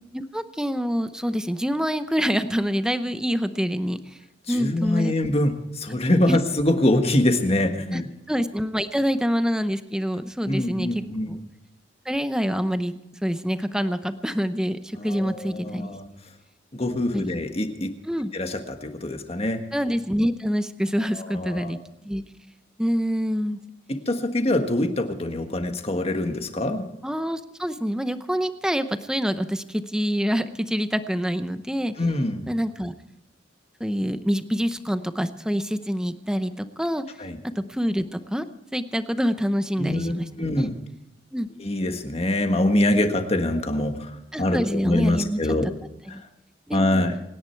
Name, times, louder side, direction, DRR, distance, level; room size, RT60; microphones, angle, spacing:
voice 1, 0.1-4.2 4.5-5.1 6.3-6.4 7.9-8.0 8.3-11.4 12.1-15.9 17.1-17.4 18.0-18.3 19.7-21.8 22.0-22.2 22.8-23.6 27.0-31.9 32.5-32.9 33.8-37.0 37.6-38.5 38.7-40.7 41.3-41.5 44.3-45.4 46.1-46.2 46.7-47.1, equal, 5° right, 10 dB, 0.7 m, -26 dB
voice 2, 4.5-8.1 10.5-11.3 15.0-16.0 16.7-17.9 18.3-19.6 21.3-21.8 24.1-26.9 32.0-32.4 37.2-37.4 39.8-40.1 40.4-40.7 41.6-45.7 46.7-47.1, left 1 dB, 35° left, 6 dB, 1.6 m, -24 dB
26.0 x 10.5 x 4.6 m, 0.84 s
head